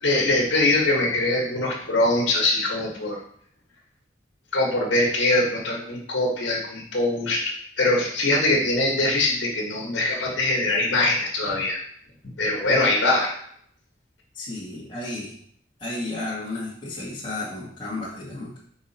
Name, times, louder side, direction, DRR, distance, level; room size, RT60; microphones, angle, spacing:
voice 1, 0.0-3.2 4.5-11.8 12.4-13.3, left 2 dB, 70° left, -2 dB, 1.5 m, -22 dB
voice 2, 14.3-15.3 15.8-18.6, left 2 dB, 25° left, -8 dB, 2.0 m, -33 dB
5.9 x 4.9 x 4.3 m, 0.64 s
head